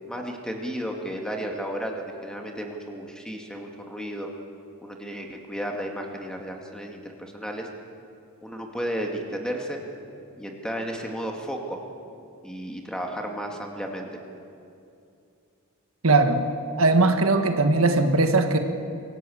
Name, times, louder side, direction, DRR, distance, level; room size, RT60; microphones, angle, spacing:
voice 1, 0.1-4.3 4.8-7.7 8.4-9.8 10.4-11.8 12.4-14.2, equal, 5° left, 1 dB, 2.2 m, -33 dB
voice 2, 16.0-16.4 16.8-18.6, right 3 dB, 75° right, 6 dB, 1.5 m, -19 dB
24.5 x 16.5 x 8.6 m, 2.5 s
head